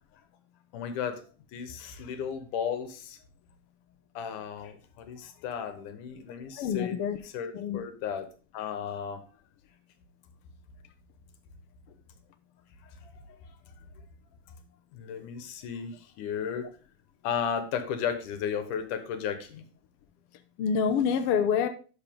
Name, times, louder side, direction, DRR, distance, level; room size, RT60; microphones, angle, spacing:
voice 1, 0.7-1.2 1.5-3.2 4.2-7.0 7.3-8.3 8.5-9.2 13.0-13.4 14.9-16.7 17.2-19.6, left 7 dB, 90° left, 9 dB, 2.6 m, -34 dB
voice 2, 6.6-7.2 7.5-7.8 20.6-21.7, left 7 dB, 70° left, 8 dB, 1.4 m, -26 dB
12.0 x 5.5 x 3.6 m, 0.37 s
omnidirectional pair, 3.5 m